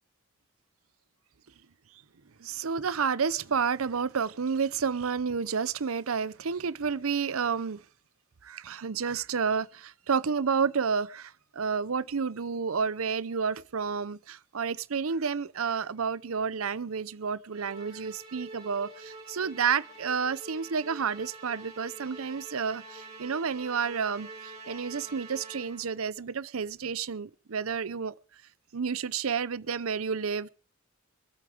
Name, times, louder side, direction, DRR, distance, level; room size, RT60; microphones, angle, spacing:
voice 1, 2.4-7.8 8.4-28.1 28.7-30.5, right 6 dB, 85° right, 0.7 m, -30 dB
Musical instrument, 17.5-26.0, right 2 dB, 30° right, 3.9 m, -46 dB
25.0 x 8.7 x 5.0 m
head